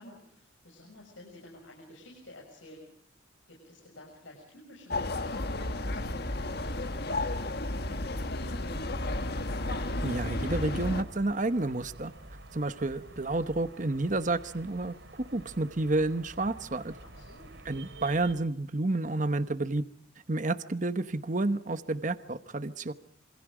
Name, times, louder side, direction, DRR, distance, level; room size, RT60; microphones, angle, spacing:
voice 1, 0.0-2.8 3.5-6.2 6.5-8.8 17.0-17.5, left 1 dB, 80° left, 0 dB, 6.7 m, -51 dB
sound 1, 4.9-11.0, left 2 dB, 55° left, 1.6 m, -32 dB
sound 2, 9.0-18.4, right 1 dB, 65° right, 3.6 m, -48 dB
voice 2, 10.0-12.1 12.5-16.9 17.6-19.8 20.3-22.9, right 2 dB, 40° right, 11 dB, 1.0 m, -30 dB
28.0 x 26.0 x 5.0 m, 0.62 s
head